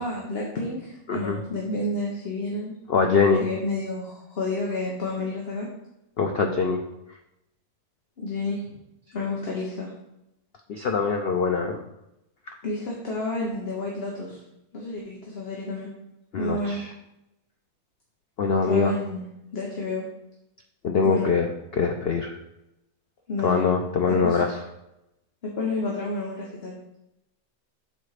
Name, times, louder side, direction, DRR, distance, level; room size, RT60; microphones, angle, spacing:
voice 1, 0.0-2.7 3.0-5.7 8.2-8.7 9.1-9.9 12.6-14.4 14.7-15.9 16.4-16.8 18.7-19.2 19.5-20.0 21.0-21.3 23.3-23.6 24.1-24.4 25.6-26.8, left 2 dB, 45° left, -2 dB, 1.1 m, -30 dB
voice 2, 1.1-1.4 2.9-3.4 6.2-6.8 10.7-11.8 12.5-12.6 16.3-16.9 18.4-18.9 20.8-22.4 23.4-24.6, left 5 dB, 70° left, 4 dB, 0.5 m, -23 dB
6.5 x 4.1 x 4.9 m, 0.89 s
omnidirectional pair, 1.7 m